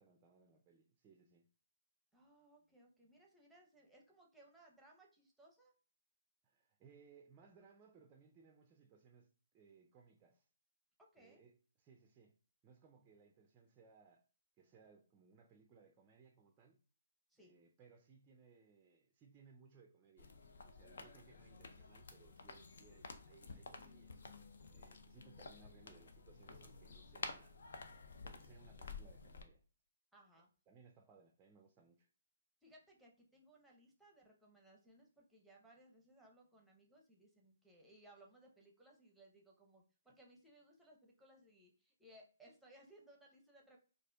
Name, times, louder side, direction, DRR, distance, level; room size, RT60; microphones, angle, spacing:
voice 1, 0.0-1.5 6.4-10.5 11.2-12.3 12.6-14.3 14.6-16.8 17.4-20.3 20.6-24.1 24.7-27.6 28.2-29.6 30.7-32.1, right 5 dB, 20° right, 0.4 m, -65 dB
voice 2, 2.1-5.7 11.0-11.4 17.3-17.6 30.1-30.5 32.6-43.8, right 1 dB, 5° right, 0.8 m, -65 dB
sound 1, 20.2-29.4, left 4 dB, 65° left, 0.5 m, -52 dB
4.1 x 2.5 x 2.3 m
hypercardioid pair, 140°, 0 cm